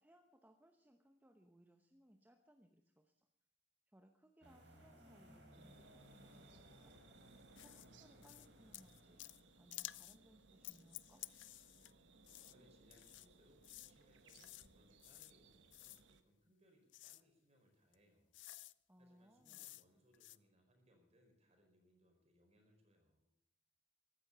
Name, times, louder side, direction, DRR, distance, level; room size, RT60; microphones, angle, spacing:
voice 1, 0.0-3.3 3.9-6.9 7.6-9.2 9.6-11.2 18.9-19.7, right 1 dB, 10° right, 4 dB, 0.9 m, -68 dB
sound 1, 4.4-9.9, equal, 70° right, 4.2 m, -63 dB
sound 2, 5.5-16.2, right 3 dB, 85° right, 1.2 m, -66 dB
sound 3, 7.6-7.9 8.2-8.5 8.7-9.4 9.7-10.2 10.6-11.9 12.2-12.5 12.9-13.3 13.6-13.9 14.3-14.7 15.0-15.3 15.7-16.0 16.9-17.2 17.9-18.0 18.3-18.7 19.4-19.8 20.1-20.4, left 16 dB, 85° left, 0.5 m, -53 dB
voice 2, 12.5-18.4 19.0-23.3, equal, 35° right, 3 dB, 4.7 m, -72 dB
15.0 x 12.5 x 6.8 m, 0.73 s
head